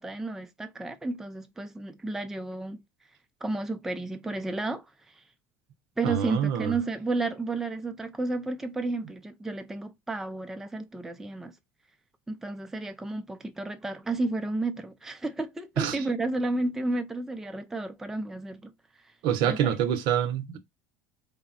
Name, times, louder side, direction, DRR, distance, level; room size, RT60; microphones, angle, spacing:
voice 1, 0.0-2.8 3.4-4.9 6.0-11.5 12.3-18.7 19.5-19.6, right 2 dB, 5° right, 0.3 m, -32 dB
voice 2, 6.0-6.7 15.8-16.0 19.2-20.6, right 9 dB, 65° right, 0.6 m, -26 dB
3.5 x 2.0 x 2.4 m
supercardioid pair, 120°, 9 cm